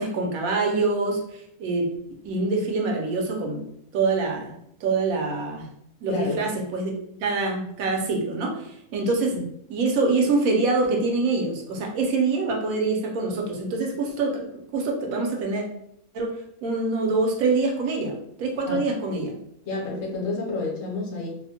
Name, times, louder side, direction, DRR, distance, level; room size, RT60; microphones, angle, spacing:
voice 1, 0.0-1.9 2.2-3.6 3.9-4.5 4.8-5.7 6.0-6.9 7.2-9.4 9.7-14.4 14.7-15.6 16.1-16.3 16.6-19.3, right 3 dB, 75° right, 1 dB, 1.0 m, -25 dB
voice 2, 6.1-6.4 9.3-9.4 18.7-18.8 19.6-21.3, left 3 dB, 65° left, -2 dB, 1.1 m, -29 dB
2.7 x 2.1 x 2.7 m, 0.74 s
omnidirectional pair, 1.5 m